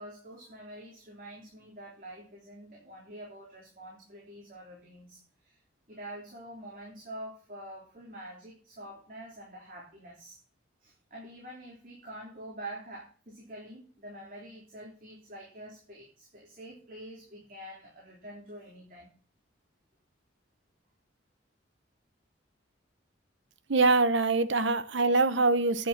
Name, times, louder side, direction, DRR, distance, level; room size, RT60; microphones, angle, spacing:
voice 1, 0.0-5.6 5.9-10.4 10.8-19.1, right 1 dB, 45° right, 3.5 m, -46 dB
voice 2, 23.7-25.9, right 3 dB, 75° right, 0.9 m, -24 dB
10.5 x 6.6 x 7.2 m
head